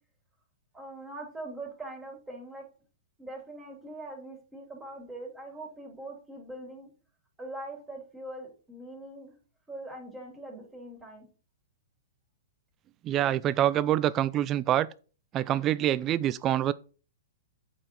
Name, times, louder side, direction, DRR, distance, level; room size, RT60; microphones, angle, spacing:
voice 1, 0.7-2.6 3.2-6.9 7.4-9.3 9.7-11.3, right 2 dB, 10° right, 3.6 m, -42 dB
voice 2, 13.0-14.9 15.3-16.7, right 12 dB, 30° right, 0.4 m, -26 dB
8.6 x 4.7 x 5.4 m
hypercardioid pair, 130°, 0 cm